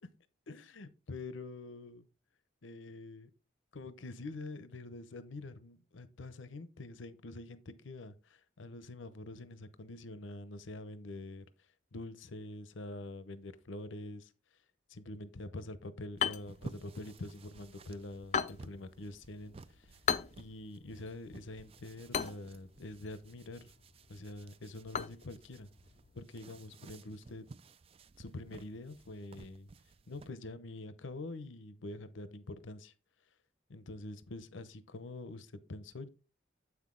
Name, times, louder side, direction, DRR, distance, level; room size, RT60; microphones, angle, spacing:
voice 1, 0.5-2.1 2.6-3.3 3.7-11.4 11.9-14.3 14.9-19.9 20.4-23.7 24.1-25.7 26.1-27.4 28.2-29.7 30.1-32.9 33.7-36.1, left 2 dB, 80° left, 0.7 m, -45 dB
sound 1, 16.1-26.2, left 7 dB, 35° left, 0.4 m, -40 dB
sound 2, 16.2-30.3, right 3 dB, 30° right, 0.3 m, -55 dB
7.9 x 5.9 x 3.7 m
head